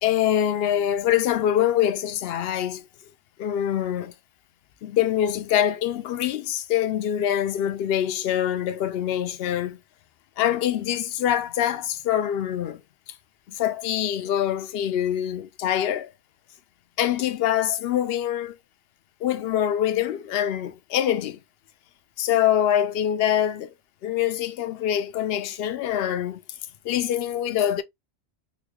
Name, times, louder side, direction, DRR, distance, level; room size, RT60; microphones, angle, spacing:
voice 1, 0.0-2.9 3.4-4.1 4.8-9.8 10.4-12.8 13.5-16.1 17.0-18.6 19.2-21.4 22.2-23.7 24.0-26.4 26.8-27.8, left 10 dB, 60° left, 0.7 m, -24 dB
3.9 x 2.3 x 2.9 m
omnidirectional pair, 1.3 m